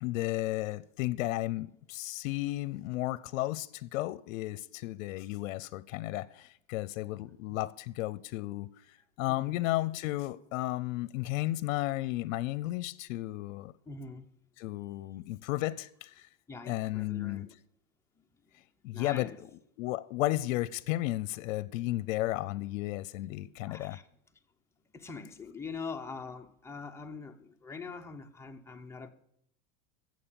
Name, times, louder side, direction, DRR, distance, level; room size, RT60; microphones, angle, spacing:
voice 1, 0.0-13.7 14.6-16.3 16.7-17.5 18.8-19.3 19.8-24.0, left 17 dB, 70° left, 0.6 m, -33 dB
voice 2, 9.0-9.6 13.9-14.3 16.5-17.6 18.2-18.3 18.9-19.4 23.6-24.1 24.9-29.1, left 4 dB, 5° left, 0.6 m, -43 dB
14.5 x 7.7 x 7.0 m
supercardioid pair, 140°, 39 cm